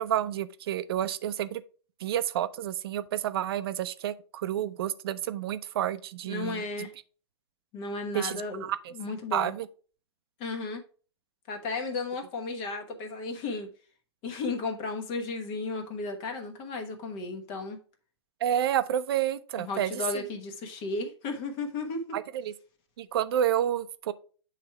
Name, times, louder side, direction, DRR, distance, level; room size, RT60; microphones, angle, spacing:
voice 1, 0.0-1.6 2.0-6.6 8.1-8.9 9.3-9.7 18.4-20.0 22.1-22.5 23.0-24.1, right 11 dB, 60° right, 0.5 m, -29 dB
voice 2, 6.3-6.9 7.7-9.5 10.4-10.8 11.5-13.7 14.2-17.8 19.6-22.0, left 3 dB, 35° left, 1.2 m, -34 dB
7.7 x 3.3 x 4.6 m
hypercardioid pair, 135°, 15 cm